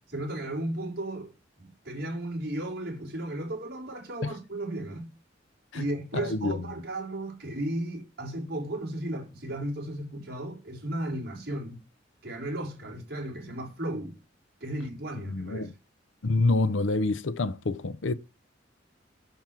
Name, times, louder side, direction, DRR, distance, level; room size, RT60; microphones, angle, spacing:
voice 1, 0.1-1.3 1.6-5.1 5.7-11.8 12.2-14.2 14.6-15.7, right 1 dB, 55° right, 4.9 m, -35 dB
voice 2, 6.1-6.6 15.3-15.7 16.2-18.1, left 2 dB, 90° left, 0.7 m, -27 dB
7.5 x 7.0 x 6.1 m
head